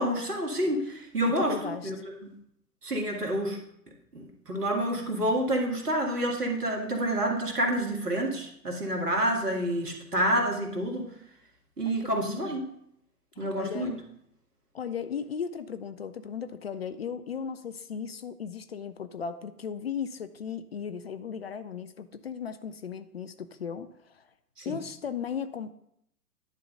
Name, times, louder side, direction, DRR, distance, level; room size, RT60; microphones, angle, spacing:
voice 1, 0.0-1.6 1.8-2.0 2.2-2.3 2.8-3.6 4.1-11.1 11.8-12.7 13.4-14.0 24.6-24.8, right 1 dB, 80° right, 1 dB, 2.0 m, -28 dB
voice 2, 1.4-1.9 11.9-12.6 13.4-14.0 14.7-24.2 24.7-25.7, left 7 dB, 45° left, 11 dB, 0.4 m, -36 dB
10.5 x 3.8 x 5.5 m, 0.74 s
figure-of-eight pair, 115°, 47 cm